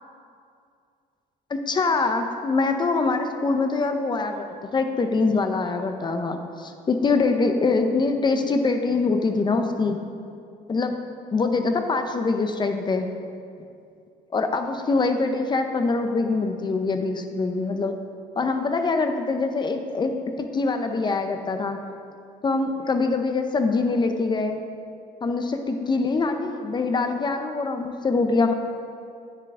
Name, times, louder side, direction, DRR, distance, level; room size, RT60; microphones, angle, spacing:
voice 1, 1.5-10.0 10.7-11.0 11.3-13.1 14.3-17.9 18.4-20.1 20.4-21.8 22.4-24.6 25.2-28.5, left 3 dB, 25° left, 6 dB, 0.7 m, -24 dB
9.2 x 6.7 x 3.7 m, 2.4 s
cardioid pair, 110°, 17 cm